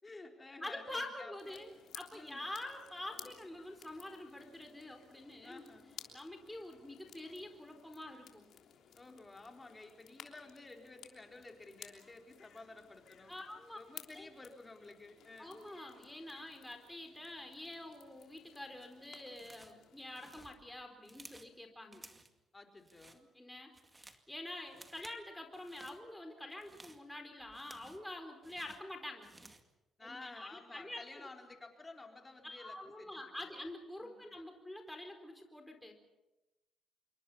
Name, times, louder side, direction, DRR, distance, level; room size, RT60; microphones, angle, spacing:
voice 1, 0.0-1.7 2.1-2.4 5.4-6.0 8.9-13.3 13.7-15.6 21.8-22.2 22.5-23.3 30.0-33.6 34.0-34.3, left 3 dB, 25° left, 2 dB, 4.4 m, -53 dB
voice 2, 0.6-1.7 1.9-5.6 6.1-8.5 13.3-13.8 14.1-14.3 15.4-22.0 23.3-29.3 30.0-31.0 32.4-35.9, left 1 dB, 5° left, 4 dB, 4.3 m, -47 dB
sound 1, 1.4-20.5, left 9 dB, 75° left, 3.3 m, -57 dB
sound 2, 19.3-19.8 20.1-21.5 21.9-22.4 22.8-23.2 23.6-24.3 24.7-25.2 25.5-26.0 26.5-28.1 28.4-29.7, right 2 dB, 15° right, 2.2 m, -57 dB
27.0 x 23.0 x 5.7 m, 0.99 s
cardioid pair, 90°, 0 cm